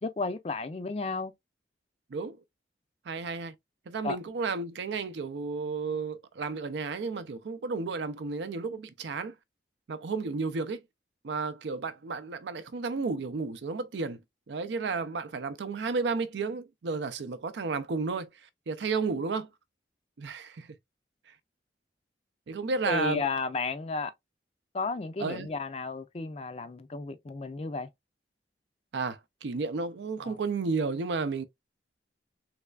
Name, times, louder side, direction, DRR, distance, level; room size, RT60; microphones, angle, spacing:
voice 1, 0.0-1.3 4.0-4.2 22.8-24.1 24.7-27.9 30.2-30.4, left 4 dB, 35° left, 0.4 m, -33 dB
voice 2, 3.1-3.5 3.9-9.3 9.9-10.8 11.2-14.2 14.5-18.3 18.7-19.5 20.2-20.7 22.5-23.2 25.2-25.5 28.9-31.4, right 4 dB, 70° right, 0.4 m, -32 dB
3.3 x 3.2 x 2.3 m
head